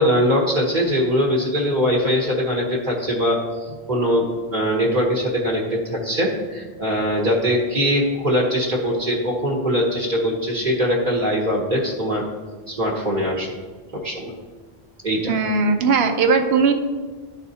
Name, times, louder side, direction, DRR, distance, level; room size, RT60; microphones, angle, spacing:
voice 1, 0.0-12.3 12.7-13.5 13.9-14.3 15.0-15.4, equal, 50° right, -3 dB, 1.1 m, -22 dB
voice 2, 15.3-16.7, right 4 dB, 75° right, 6 dB, 1.0 m, -18 dB
11.5 x 4.2 x 2.8 m, 1.4 s
omnidirectional pair, 1.1 m